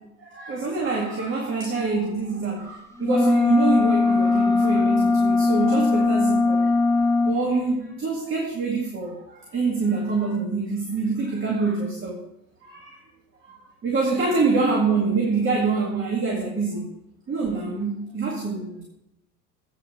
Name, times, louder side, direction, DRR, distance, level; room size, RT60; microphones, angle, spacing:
voice 1, 0.2-6.7 7.2-12.2 12.6-13.0 13.4-16.9 17.3-18.8, right 4 dB, 25° right, -2 dB, 2.1 m, -26 dB
sound 1, 3.0-7.4, left 3 dB, 5° left, 0.7 m, -20 dB
8.7 x 6.0 x 6.9 m, 0.82 s
figure-of-eight pair, 80°, 49 cm